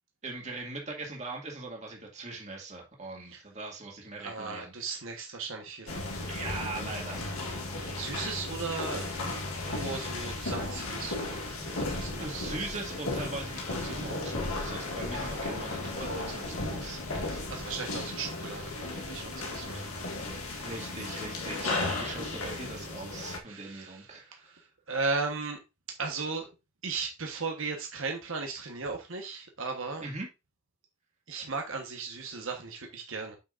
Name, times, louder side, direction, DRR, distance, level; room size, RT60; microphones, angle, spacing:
voice 1, 0.2-4.7 6.3-7.2 12.2-17.5 20.6-24.5 30.0-30.3, right 2 dB, 30° right, 2.1 m, -41 dB
voice 2, 4.2-6.0 7.7-9.1 9.7-11.4 11.7-12.4 15.2-15.4 17.1-19.9 23.4-25.6 26.0-26.5 26.8-30.1 31.3-33.4, right 4 dB, 70° right, 1.2 m, -36 dB
sound 1, 5.9-23.4, left 2 dB, 90° left, 2.0 m, -35 dB
8.4 x 6.2 x 2.5 m
head